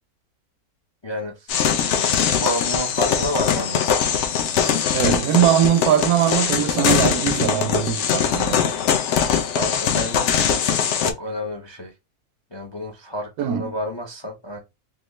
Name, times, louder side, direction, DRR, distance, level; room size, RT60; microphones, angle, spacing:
voice 1, 1.0-1.7 2.3-4.0 9.5-10.7 11.0-11.9 12.5-14.6, equal, 45° left, 0.3 m, -30 dB
sound 1, 1.5-11.1, left 8 dB, 65° left, 0.8 m, -21 dB
voice 2, 4.9-8.8 13.4-13.7, right 10 dB, 80° right, 1.0 m, -21 dB
3.7 x 2.6 x 3.1 m
omnidirectional pair, 1.6 m